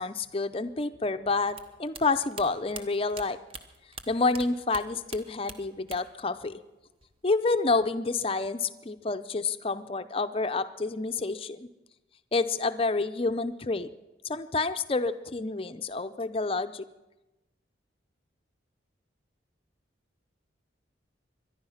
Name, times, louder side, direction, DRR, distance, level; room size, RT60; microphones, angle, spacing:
voice 1, 0.0-3.4 4.1-6.6 7.2-11.7 12.3-13.9 14.2-16.8, left 3 dB, 30° left, 10 dB, 0.6 m, -29 dB
sound 1, 1.5-4.4 4.7-6.2 6.5-7.2, right 4 dB, 30° right, 0.9 m, -43 dB
23.5 x 11.0 x 5.7 m, 1.1 s
head